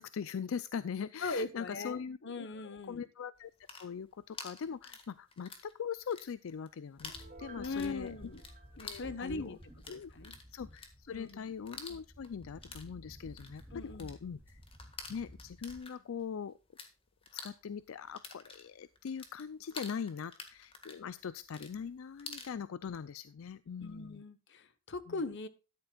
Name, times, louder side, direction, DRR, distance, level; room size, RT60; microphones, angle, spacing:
voice 1, 0.0-7.1 7.4-8.1 8.8-9.6 9.9-10.1 10.5-14.6 15.1-16.6 17.3-24.2 25.1-25.2, left 7 dB, 85° left, 15 dB, 0.4 m, -41 dB
voice 2, 1.2-3.0 7.6-8.4 8.8-9.6 9.9-10.3 11.1-11.5 13.7-14.1 23.8-25.5, left 3 dB, 60° left, 12 dB, 1.0 m, -40 dB
sound 1, 3.4-5.7 6.0-6.7 7.0-16.9 17.2-22.5, left 4 dB, 25° left, 1.7 m, -49 dB
sound 2, 7.0-15.8, equal, 10° right, 2.9 m, -54 dB
Piano, 7.1-9.8 10.2-10.3, right 3 dB, 40° right, 3.7 m, -56 dB
13.0 x 10.5 x 2.4 m, 0.31 s
head